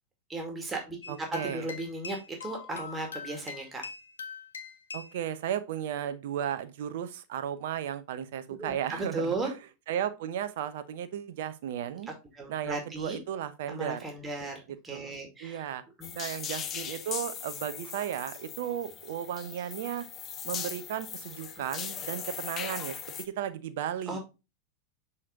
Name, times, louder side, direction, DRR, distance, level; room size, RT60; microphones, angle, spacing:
voice 1, 0.3-3.8 8.6-9.5 12.4-13.2 13.7-15.6 16.0-16.1 24.1-24.2, right 2 dB, 15° right, 2.2 m, -36 dB
sound 1, 1.0-5.2, left 5 dB, 75° left, 0.9 m, -42 dB
voice 2, 1.1-1.7 4.9-9.6 9.9-12.1 12.5-14.0 14.9-15.1 15.4-15.8 16.1-20.1 20.4-24.2, right 10 dB, 60° right, 0.7 m, -35 dB
sound 2, 16.0-23.2, left 8 dB, 30° left, 0.8 m, -39 dB
6.7 x 4.3 x 3.6 m
figure-of-eight pair, 90°, 0 cm